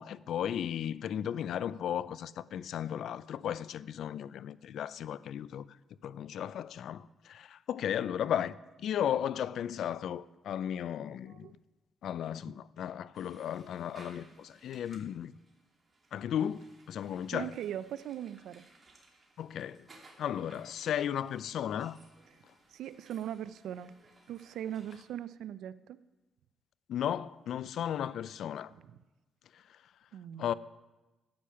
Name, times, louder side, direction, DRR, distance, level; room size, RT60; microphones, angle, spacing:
voice 1, 0.0-5.7 6.0-11.5 12.0-15.3 16.1-17.5 19.4-19.9 20.2-22.0 26.9-28.7 29.5-29.8 30.4-30.5, left 9 dB, 70° left, 0.4 m, -35 dB
sound 1, 13.1-25.1, right 2 dB, 35° right, 2.7 m, -61 dB
voice 2, 17.3-18.7 22.7-23.9 24.3-26.0 28.7-28.8 30.1-30.5, right 10 dB, 80° right, 0.5 m, -40 dB
12.0 x 8.7 x 5.7 m
cardioid pair, 90°, 0 cm